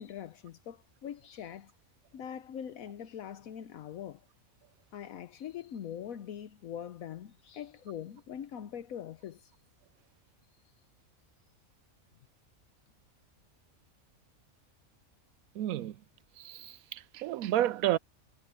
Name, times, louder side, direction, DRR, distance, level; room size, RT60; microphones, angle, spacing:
voice 1, 0.0-1.7 2.1-4.2 4.9-9.5, left 9 dB, 80° left, 1.2 m, -42 dB
voice 2, 15.6-15.9 16.4-18.0, right 13 dB, 85° right, 1.0 m, -31 dB
omnidirectional pair, 1.5 m